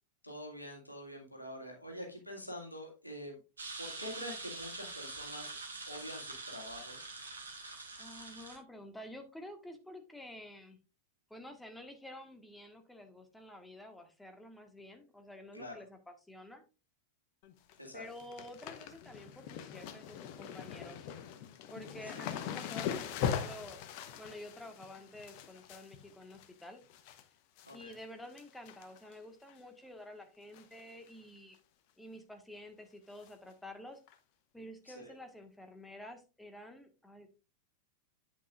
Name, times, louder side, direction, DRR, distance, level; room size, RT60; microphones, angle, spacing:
voice 1, 0.2-3.4 3.8-5.6 5.9-7.1 15.5-15.8 17.8-18.1 22.1-22.3 27.6-27.9 34.9-35.1, equal, 85° left, 0 dB, 2.2 m, -46 dB
sound 1, 3.6-8.6, right 3 dB, 75° right, 1.9 m, -45 dB
voice 2, 8.0-10.8 11.3-16.6 17.9-21.0 21.7-23.8 24.2-26.8 27.7-31.6 32.0-34.0 34.5-37.3, left 1 dB, 5° left, 5 dB, 1.5 m, -50 dB
sound 2, 17.4-17.7 18.0-27.2 27.6-28.0 28.3-29.1 29.5-29.6 30.5-30.8 31.1-31.2 31.5-31.6 33.2-33.3 34.1-34.2, left 8 dB, 45° left, 1.0 m, -41 dB
8.5 x 8.4 x 2.5 m, 0.31 s
figure-of-eight pair, 90°, 0 cm